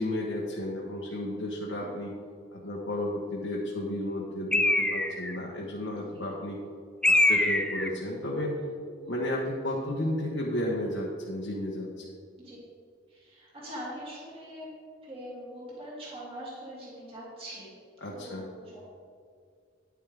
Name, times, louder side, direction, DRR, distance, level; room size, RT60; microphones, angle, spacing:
voice 1, 0.0-2.1 2.5-6.6 7.0-8.5 9.1-12.0 18.0-18.5, left 1 dB, 85° left, -3 dB, 1.3 m, -33 dB
voice 2, 1.8-2.1 5.9-6.3 9.0-9.4 12.4-12.6 13.1-14.7 15.0-17.7 18.1-18.8, equal, 30° right, -7 dB, 2.8 m, -43 dB
Bird, 4.5-5.4 7.0-8.0, left 1 dB, 5° left, 0.4 m, -24 dB
11.0 x 9.4 x 3.6 m, 2.2 s
head